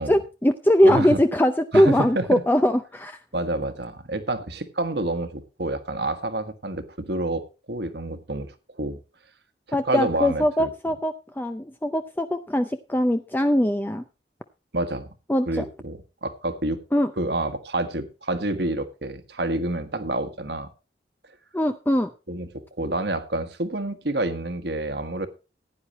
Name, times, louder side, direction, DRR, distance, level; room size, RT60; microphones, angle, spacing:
voice 1, 0.0-3.2 9.7-14.0 15.3-15.6 16.9-17.1 21.5-22.1, equal, 10° left, 0.5 m, -21 dB
voice 2, 0.8-1.2 1.7-2.4 3.3-7.4 7.7-8.5 8.8-9.0 9.7-10.7 14.7-15.1 15.5-16.8 17.2-20.7 22.3-22.5 22.8-25.3, right 2 dB, 60° right, 1.5 m, -28 dB
15.5 x 10.0 x 3.0 m
head